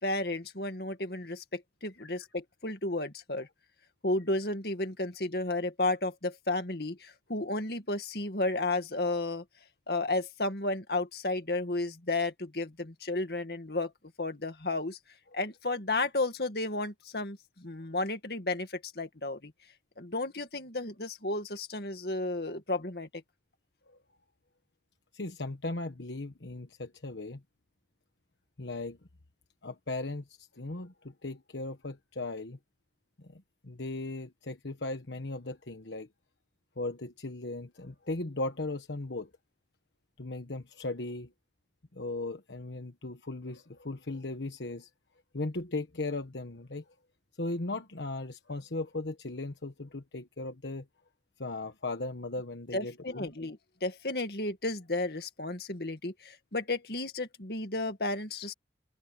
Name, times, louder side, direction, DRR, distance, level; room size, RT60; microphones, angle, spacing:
voice 1, 0.0-3.5 4.0-9.4 9.9-13.9 14.2-15.0 15.3-19.5 20.0-23.2 52.7-58.5, left 2 dB, 60° left, 2.2 m, -33 dB
voice 2, 25.1-27.4 28.6-29.0 29.6-32.6 33.2-36.1 36.8-39.3 40.2-41.3 41.9-44.9 45.3-46.8 47.4-50.9 51.4-53.3, left 2 dB, 80° left, 1.2 m, -37 dB
open air
head